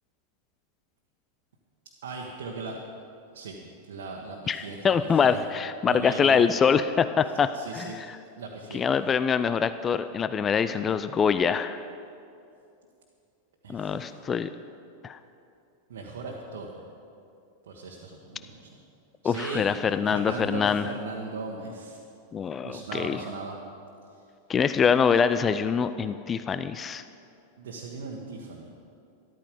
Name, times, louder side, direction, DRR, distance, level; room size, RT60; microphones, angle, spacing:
voice 1, 2.0-2.8 3.3-3.6 3.9-5.4 5.8-6.5 7.5-8.0 8.4-8.8 13.6-14.2 15.9-16.8 17.7-18.7 19.2-19.6 20.1-22.0 22.6-23.6 27.6-28.7, right 4 dB, 60° right, -2 dB, 1.4 m, -38 dB
voice 2, 4.5-8.2 8.7-11.8 13.7-14.5 15.0-15.2 19.2-20.9 22.3-23.2 24.5-27.0, left 6 dB, 20° left, 12 dB, 0.4 m, -24 dB
13.5 x 13.0 x 5.2 m, 2.6 s
figure-of-eight pair, 90°, 0 cm